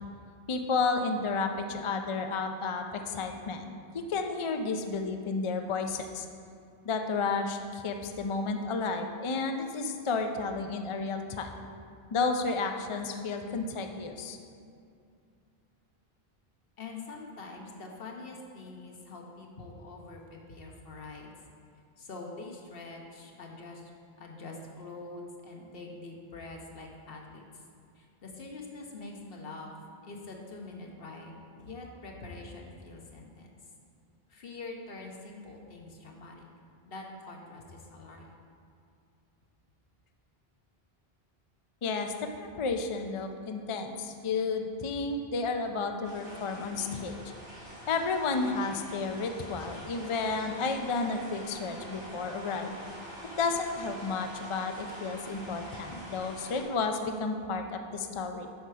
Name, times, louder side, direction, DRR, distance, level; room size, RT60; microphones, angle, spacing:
voice 1, 0.5-6.3 6.8-11.5 12.1-14.4 41.8-47.3 47.9-52.8 53.4-58.5, left 4 dB, 45° left, 5 dB, 0.4 m, -32 dB
voice 2, 16.8-21.3 22.0-23.9 24.2-27.6 27.9-29.7 30.0-33.6 34.3-36.4 36.8-38.3, left 3 dB, 70° left, 1 dB, 1.2 m, -45 dB
sound 1, 46.0-56.6, equal, 80° right, 2.4 m, -45 dB
8.0 x 5.6 x 4.8 m, 2.4 s
omnidirectional pair, 1.0 m